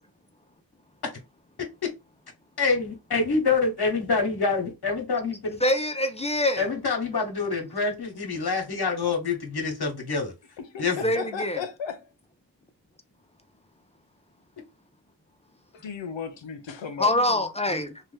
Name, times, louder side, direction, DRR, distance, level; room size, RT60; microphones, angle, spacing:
voice 1, 1.6-1.9 2.6-5.6 6.6-10.3 10.8-11.0, left 4 dB, 60° left, 1.1 m, -26 dB
voice 2, 5.6-6.7 11.0-11.6 17.0-18.0, left 1 dB, 15° left, 0.5 m, -24 dB
voice 3, 10.6-12.1 15.7-17.1, left 6 dB, 80° left, 0.6 m, -35 dB
2.8 x 2.2 x 3.3 m
cardioid pair, 55°, 44 cm